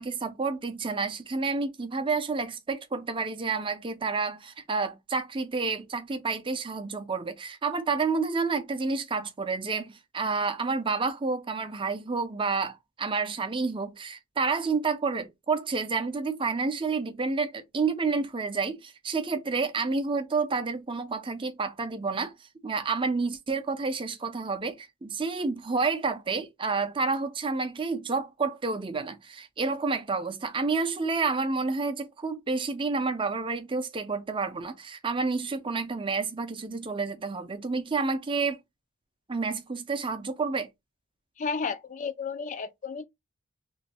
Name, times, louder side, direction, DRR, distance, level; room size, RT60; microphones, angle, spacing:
voice 1, 0.0-38.6 39.3-40.7, right 4 dB, 20° right, 0.5 m, -29 dB
voice 2, 41.4-43.0, left 5 dB, 35° left, 0.4 m, -32 dB
3.1 x 2.2 x 4.1 m
head